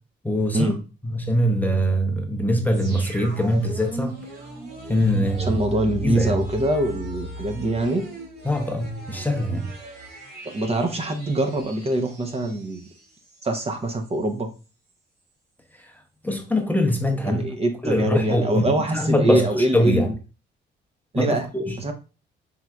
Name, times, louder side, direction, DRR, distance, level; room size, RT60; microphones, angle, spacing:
voice 1, 0.2-0.8 1.0-4.2 4.9-6.4 8.4-9.7 16.2-17.4 17.8-20.1 21.1-21.8, equal, 10° left, 0.7 m, -23 dB
sound 1, 2.7-13.6 13.9-14.0, right 1 dB, 55° right, 2.2 m, -38 dB
voice 2, 5.4-8.0 10.4-12.9 13.4-14.5 17.2-20.1 21.1-21.5 21.8-21.9, right 1 dB, 30° right, 0.8 m, -24 dB
5.5 x 3.2 x 2.3 m
cardioid pair, 90°, 20 cm